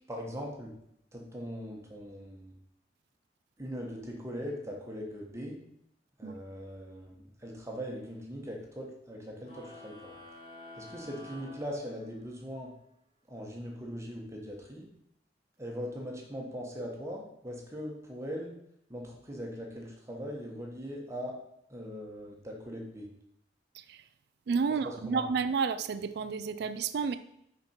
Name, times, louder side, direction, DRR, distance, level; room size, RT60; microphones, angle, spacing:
voice 1, 0.1-0.7 1.1-2.5 3.6-5.6 6.2-10.1 10.7-12.7 13.3-14.9 15.6-18.5 18.9-21.4 21.7-23.1 24.8-25.2, equal, 15° right, -1 dB, 1.2 m, -40 dB
sound 1, 9.4-12.4, left 2 dB, 40° left, 2.7 m, -49 dB
voice 2, 23.7-24.1 24.5-27.2, right 5 dB, 65° right, 12 dB, 0.4 m, -31 dB
6.9 x 5.1 x 4.4 m, 0.75 s
head